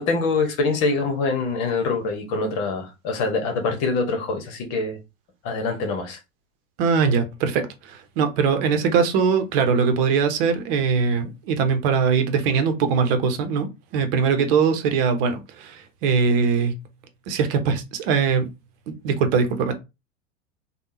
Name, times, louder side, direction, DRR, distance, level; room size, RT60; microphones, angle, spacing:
voice 1, 0.0-5.0 5.4-6.2, left 3 dB, 45° left, 1.3 m, -24 dB
voice 2, 6.8-13.7 13.9-16.7 17.3-18.5 18.9-19.7, right 5 dB, 50° right, 0.9 m, -21 dB
3.5 x 2.4 x 2.8 m
figure-of-eight pair, 95°, 38 cm